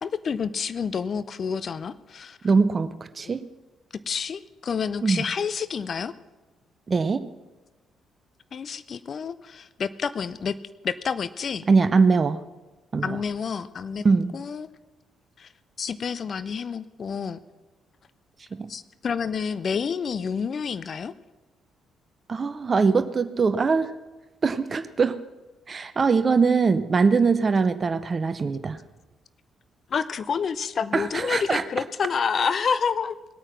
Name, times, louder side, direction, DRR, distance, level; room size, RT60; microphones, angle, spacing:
voice 1, 0.0-2.4 4.1-6.1 8.5-10.6 10.8-11.7 13.0-14.0 14.3-14.7 15.4-15.5 15.8-17.4 18.7-21.1 29.9-33.2, left 6 dB, 45° left, 14 dB, 0.6 m, -29 dB
voice 2, 2.4-2.9 3.2-3.4 5.0-5.2 6.9-7.2 11.7-12.4 12.9-13.2 14.0-14.3 18.6-18.7 22.3-23.9 24.4-25.2 25.7-28.8 30.9-31.6, right 4 dB, 35° right, 13 dB, 0.7 m, -22 dB
19.5 x 8.8 x 6.0 m, 1.2 s
figure-of-eight pair, 40°, 0 cm